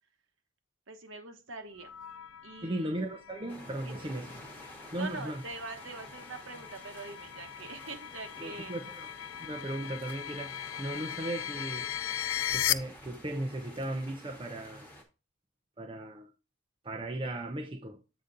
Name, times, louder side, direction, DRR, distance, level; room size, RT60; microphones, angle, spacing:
voice 1, 0.9-1.9 2.4-3.1 3.8-4.1 4.9-8.7, right 3 dB, 65° right, 1.2 m, -44 dB
sound 1, 1.8-12.7, left 11 dB, 70° left, 0.4 m, -38 dB
voice 2, 2.6-4.4 4.9-5.4 8.4-9.1 9.4-12.0 12.5-14.9 15.8-16.3 16.8-18.0, right 1 dB, 25° right, 0.7 m, -37 dB
sound 2, 3.5-15.0, left 1 dB, 10° left, 1.4 m, -51 dB
8.1 x 4.0 x 3.9 m
head